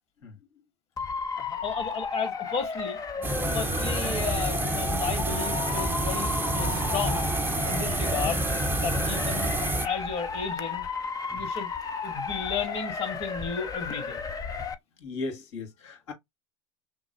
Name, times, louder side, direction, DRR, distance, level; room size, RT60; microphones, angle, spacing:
Motor vehicle (road) / Siren, 1.0-14.7, left 5 dB, 20° left, 0.8 m, -34 dB
voice 1, 1.4-3.3 3.5-7.3 7.7-8.5 8.8-10.8 11.3-11.7 12.0-14.2, left 6 dB, 40° left, 2.0 m, -33 dB
sound 1, 3.2-9.9, right 2 dB, 10° right, 0.9 m, -28 dB
voice 2, 15.0-16.1, left 3 dB, 65° left, 2.2 m, -37 dB
6.1 x 2.0 x 2.5 m
figure-of-eight pair, 75°, 16 cm